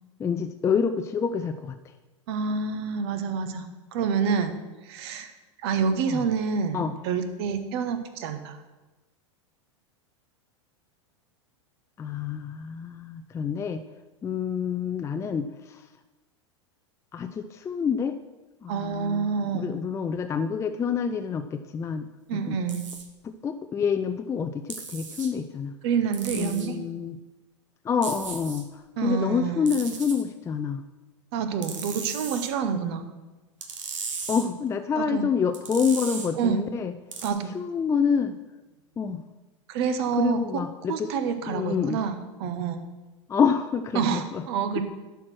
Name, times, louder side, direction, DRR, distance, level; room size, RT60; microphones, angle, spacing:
voice 1, 0.2-1.8 6.1-6.2 6.7-6.9 12.0-13.8 14.2-15.8 17.1-18.2 18.6-22.0 22.3-22.6 23.2-25.7 26.4-27.2 27.8-30.8 34.3-36.9 37.5-38.3 39.0-39.2 40.2-41.1 41.5-42.0 43.3-44.4, left 6 dB, 20° left, 7 dB, 0.4 m, -27 dB
voice 2, 2.3-3.7 3.9-4.6 4.8-5.3 5.6-8.6 18.7-19.8 22.3-22.9 25.8-26.8 29.0-29.7 31.3-33.1 34.9-35.3 36.4-36.6 37.2-37.5 39.7-40.6 40.9-42.8 43.9-44.8, right 6 dB, 55° right, 9 dB, 1.2 m, -27 dB
sound 1, 22.7-23.0 24.7-25.3 26.1-26.7 28.0-28.6 29.7-30.2 31.6-32.5 33.6-34.5 35.5-36.3 37.1-37.3, right 5 dB, 75° right, 1.4 m, -36 dB
11.5 x 4.7 x 6.2 m, 1.1 s
hypercardioid pair, 100°, 16 cm